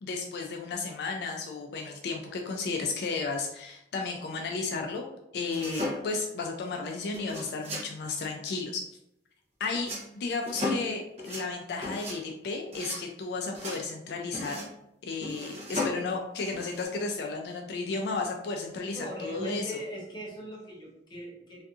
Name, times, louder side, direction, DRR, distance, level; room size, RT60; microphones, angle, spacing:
voice 1, 0.0-5.1 5.3-8.8 9.6-9.9 10.2-14.7 15.0-19.8, left 4 dB, 65° left, 2 dB, 0.3 m, -33 dB
sound 1, 5.5-6.3 7.1-7.9 9.7-10.1 10.4-10.9 11.2-11.5 11.8-12.2 12.7-13.0 13.5-13.8 14.3-14.7 15.2-16.0 16.5-16.8, left 1 dB, 35° right, 0.7 m, -35 dB
voice 2, 18.9-21.6, equal, 25° left, -2 dB, 0.6 m, -39 dB
2.6 x 2.4 x 2.3 m, 0.81 s
head